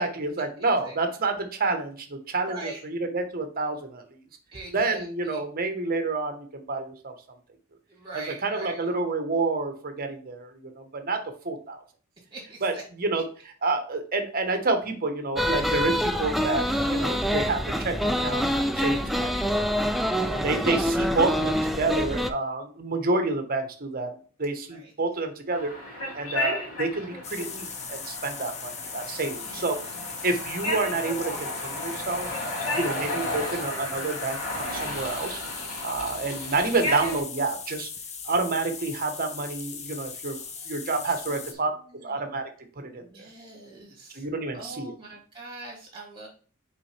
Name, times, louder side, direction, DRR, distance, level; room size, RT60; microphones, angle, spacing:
voice 1, 0.0-2.6 2.8-4.2 4.7-7.1 8.1-11.2 11.4-11.8 12.6-13.2 13.6-19.7 20.3-29.8 30.0-32.3 32.7-35.4 35.8-37.9 38.2-40.4 40.7-41.7 42.0-42.5 42.8-43.0 44.1-44.9, right 3 dB, 45° right, 6 dB, 1.1 m, -29 dB
voice 2, 2.4-2.8 4.5-5.4 7.9-8.9 12.3-12.8 20.5-20.8 24.7-24.9 29.3-30.3 40.3-40.7 41.3-41.4 41.9-42.2 43.0-44.3 44.5-46.3, right 2 dB, 25° right, -2 dB, 2.8 m, -43 dB
sound 1, 15.4-22.3, equal, ahead, 0.3 m, -26 dB
sound 2, 25.5-37.2, left 1 dB, 75° left, 3.2 m, -34 dB
sound 3, 27.2-41.5, left 6 dB, 30° left, 0.8 m, -39 dB
6.0 x 5.0 x 3.3 m, 0.41 s
head